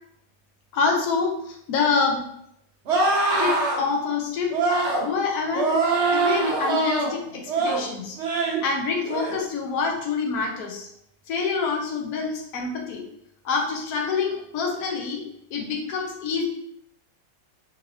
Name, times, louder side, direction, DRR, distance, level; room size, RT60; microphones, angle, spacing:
voice 1, 0.7-2.2 3.4-4.5 5.0-5.8 6.1-8.2 8.6-10.9 11.3-13.1 13.4-15.2 15.5-16.4, left 4 dB, 65° left, 1 dB, 1.1 m, -26 dB
sound 1, 2.9-3.8 4.5-5.0 5.5-7.1 7.5-7.8 8.2-8.6 9.0-9.3, right 3 dB, 55° right, 0.9 m, -23 dB
3.9 x 2.8 x 2.7 m, 0.74 s
omnidirectional pair, 1.9 m